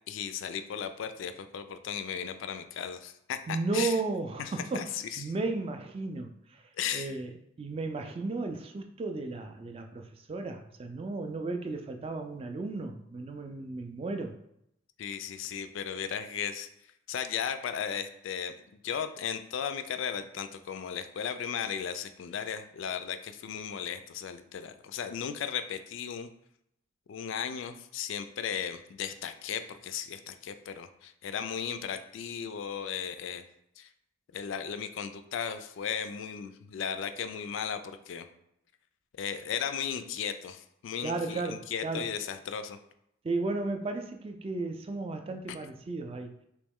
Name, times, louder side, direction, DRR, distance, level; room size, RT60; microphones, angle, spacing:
voice 1, 0.1-4.0 4.4-5.2 6.8-7.2 15.0-16.7 17.1-18.5 18.8-26.3 27.1-33.4 33.8-33.9 34.3-38.3 39.2-42.8 45.5-45.6, left 8 dB, 75° left, 9 dB, 0.3 m, -36 dB
voice 2, 3.5-6.6 6.9-7.3 7.6-14.4 41.0-42.1 43.2-46.3, right 3 dB, 30° right, 6 dB, 0.3 m, -34 dB
3.1 x 2.9 x 3.5 m, 0.77 s
head